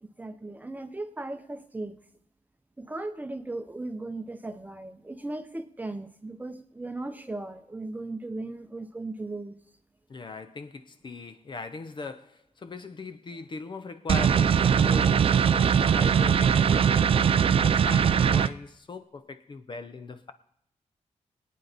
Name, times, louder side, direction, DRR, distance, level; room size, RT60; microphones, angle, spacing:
voice 1, 0.0-1.9 2.8-9.5, right 2 dB, 15° right, 0.8 m, -37 dB
voice 2, 10.1-20.3, left 3 dB, 40° left, 0.8 m, -40 dB
sound 1, 14.1-18.5, right 7 dB, 50° right, 0.4 m, -21 dB
22.5 x 9.3 x 4.1 m
wide cardioid pair, 140°, 12 cm